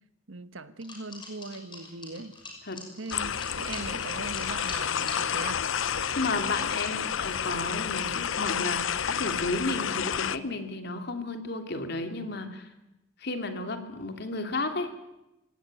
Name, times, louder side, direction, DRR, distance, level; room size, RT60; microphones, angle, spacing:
voice 1, 0.3-2.4 3.0-5.7, right 3 dB, 85° right, 12 dB, 1.4 m, -40 dB
sound 1, 0.8-5.2 5.6-7.5, left 3 dB, 25° left, 6.2 m, -44 dB
sound 2, 3.1-10.4, left 8 dB, 80° left, 0.8 m, -30 dB
voice 2, 6.2-12.7 13.2-14.9, left 2 dB, 55° left, 6 dB, 2.9 m, -33 dB
25.0 x 17.5 x 9.2 m, 0.95 s
head